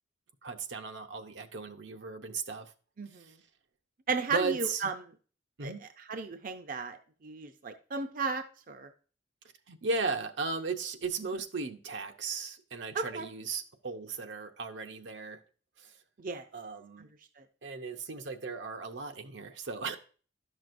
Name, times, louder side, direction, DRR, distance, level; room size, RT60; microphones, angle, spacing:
voice 1, 0.4-2.7 3.1-3.3 4.3-4.9 5.6-5.8 9.7-15.4 15.8-16.0 16.5-17.1 17.6-20.0, right 4 dB, 80° right, 0.8 m, -36 dB
voice 2, 3.0-3.4 4.1-4.9 5.6-5.7 6.1-7.0 7.2-8.9 12.9-13.3 16.2-16.4 17.0-17.1 17.4-17.5, right 4 dB, 50° right, 0.5 m, -34 dB
11.5 x 6.2 x 2.6 m
head